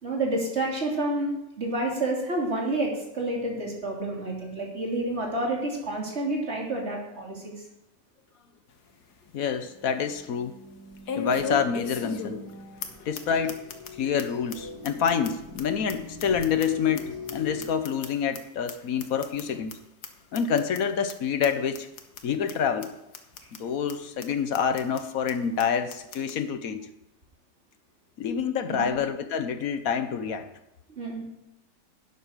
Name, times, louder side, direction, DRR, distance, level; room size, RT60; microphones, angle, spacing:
voice 1, 0.0-1.3 1.6-7.5 28.7-29.0 31.0-31.3, right 2 dB, 40° right, -1 dB, 3.1 m, -29 dB
sound 1, 8.7-8.8 9.3-9.4 11.1-12.5 12.8-12.9 13.1-13.2 13.5-13.9 14.2-14.3 14.5-14.6 14.8-17.0 17.3-18.4 18.7-18.8 19.0-19.4 19.7-19.8 20.0-20.1 20.3-20.8 21.1-21.2 21.4-21.5 21.7-22.2 22.5-22.6 22.8-22.9 23.1-23.6 23.9-24.0 24.2-24.3 24.5-25.0 25.3-25.4 25.6-25.7 25.9-26.3, left 5 dB, 80° left, 1.7 m, -35 dB
voice 2, 9.3-10.6 11.1-12.5 13.0-13.6 14.0-19.8 20.3-21.9 22.2-22.9 23.6-26.9 28.2-30.5, left 7 dB, 65° left, 10 dB, 1.3 m, -27 dB
sound 2, 9.7-17.7, left 2 dB, 90° right, 3.9 m, -44 dB
12.0 x 9.4 x 5.1 m, 0.88 s
omnidirectional pair, 1.7 m